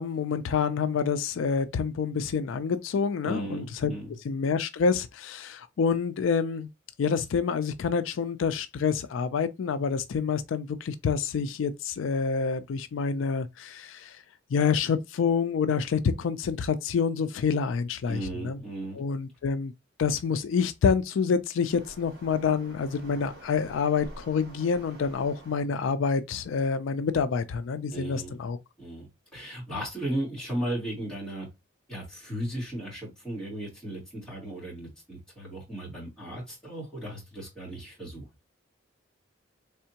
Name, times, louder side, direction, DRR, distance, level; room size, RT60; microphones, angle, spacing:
voice 1, 0.0-3.9 4.2-6.7 7.0-14.2 14.5-18.6 19.0-19.7 20.0-28.6, left 5 dB, 80° left, 0.4 m, -27 dB
voice 2, 3.2-4.2 18.1-19.0 27.9-28.4 28.8-31.5 31.9-38.3, right 1 dB, 5° left, 2.4 m, -36 dB
Waves surf, 21.7-25.7, equal, 50° right, 1.6 m, -48 dB
3.6 x 3.3 x 2.8 m
head